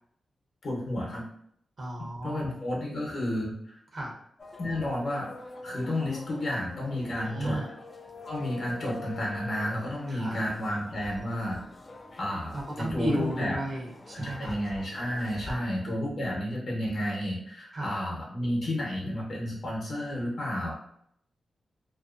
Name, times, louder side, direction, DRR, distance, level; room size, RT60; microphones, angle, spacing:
voice 1, 0.6-1.3 2.2-3.8 4.6-5.3 5.6-7.6 8.3-11.6 12.2-13.6 14.1-20.7, left 1 dB, 55° left, -3 dB, 0.9 m, -31 dB
voice 2, 1.8-2.5 3.9-4.2 7.2-7.7 10.1-10.4 12.5-14.6 15.5-15.6 17.7-18.0, right 1 dB, 50° right, -2 dB, 0.8 m, -33 dB
sound 1, 4.4-15.5, left 2 dB, 35° left, 0.3 m, -46 dB
2.6 x 2.1 x 2.4 m, 0.70 s
wide cardioid pair, 95°, 0 cm